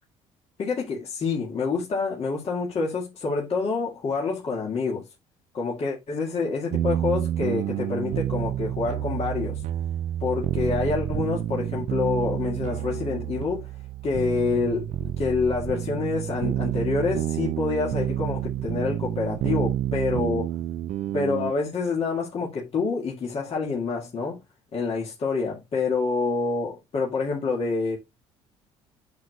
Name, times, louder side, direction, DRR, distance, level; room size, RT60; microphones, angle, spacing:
voice 1, 0.6-5.1 5.5-9.6 10.2-13.7 14.0-20.6 21.1-24.4 24.7-28.0, left 4 dB, 45° left, 2.0 m, -27 dB
sound 1, 6.7-21.5, right 12 dB, 55° right, 0.5 m, -29 dB
8.3 x 6.3 x 2.3 m
hypercardioid pair, 65°, 14 cm